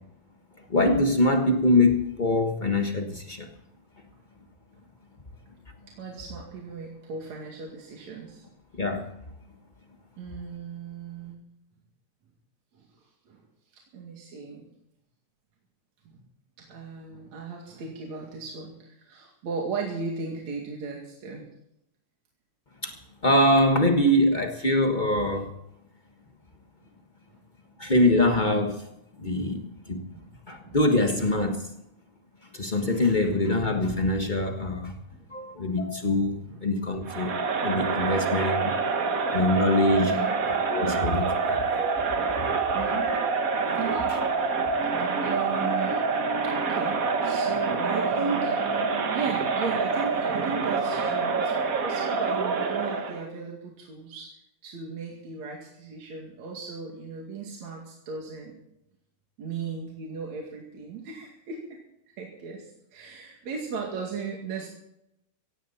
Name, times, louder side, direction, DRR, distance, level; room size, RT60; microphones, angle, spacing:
voice 1, 0.7-3.5 8.8-9.0 22.8-22.9 23.2-25.5 27.8-28.9 29.2-29.6 29.9-30.0 30.5-31.7 32.5-35.0 35.3-37.3 37.6-38.7 39.3-40.1 40.7-42.0, left 1 dB, 55° left, 4 dB, 0.5 m, -23 dB
voice 2, 5.9-8.4 10.2-11.4 12.8-12.9 13.3-13.4 13.7-14.6 16.1-16.2 16.6-21.4 29.5-29.7 30.1-30.3 30.6-30.8 33.2-33.3 35.1-35.3 35.8-35.9 36.5-36.6 40.1-40.3 42.7-43.1 43.7-44.4 44.7-46.0 46.4-54.3 54.6-58.5 59.4-61.6 62.2-64.7, right 5 dB, 70° right, -1 dB, 3.5 m, -36 dB
Crowd, 37.1-53.2, right 4 dB, 50° right, 1.0 m, -26 dB
17.0 x 16.5 x 4.2 m, 0.79 s
omnidirectional pair, 3.3 m